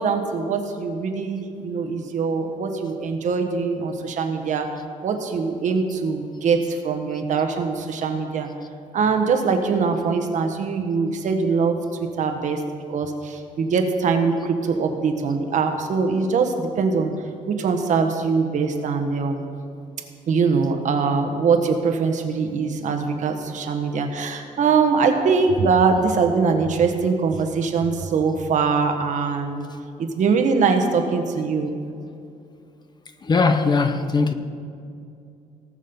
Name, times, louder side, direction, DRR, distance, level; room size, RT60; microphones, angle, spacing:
voice 1, 0.0-4.7 5.0-8.5 8.9-11.8 12.2-12.6 12.9-17.1 17.5-19.4 20.3-29.7 30.0-31.7, right 5 dB, 60° right, 1.3 m, -22 dB
voice 2, 33.2-34.3, left 4 dB, 30° left, 0.8 m, -19 dB
18.0 x 6.4 x 5.4 m
cardioid pair, 125°, 14 cm